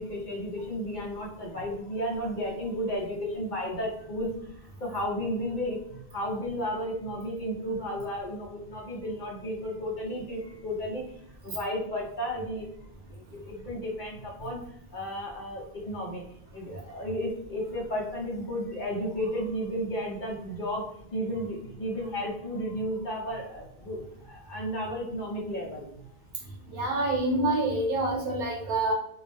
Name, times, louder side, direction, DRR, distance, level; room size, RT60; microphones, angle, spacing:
voice 1, 0.0-16.3 16.5-26.1, equal, 50° left, -3 dB, 0.8 m, -33 dB
voice 2, 26.7-28.9, right 2 dB, 65° right, -1 dB, 0.9 m, -27 dB
2.5 x 2.0 x 3.2 m, 0.71 s
omnidirectional pair, 1.1 m